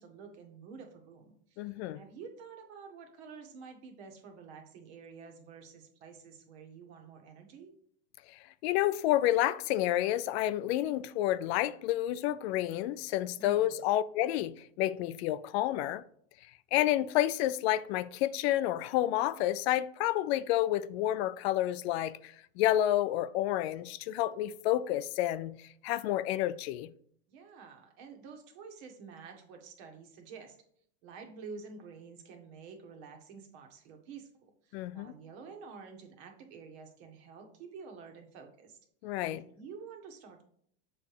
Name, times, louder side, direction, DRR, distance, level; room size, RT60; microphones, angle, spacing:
voice 1, 0.0-7.7 13.4-13.8 27.3-30.6 31.0-38.8 39.3-40.4, right 5 dB, 65° right, 1.6 m, -49 dB
voice 2, 1.6-2.0 8.6-16.0 16.7-25.6 25.8-26.9 34.7-35.1 39.0-39.4, left 13 dB, 65° left, 0.5 m, -30 dB
7.0 x 3.4 x 4.8 m
supercardioid pair, 115°, 35 cm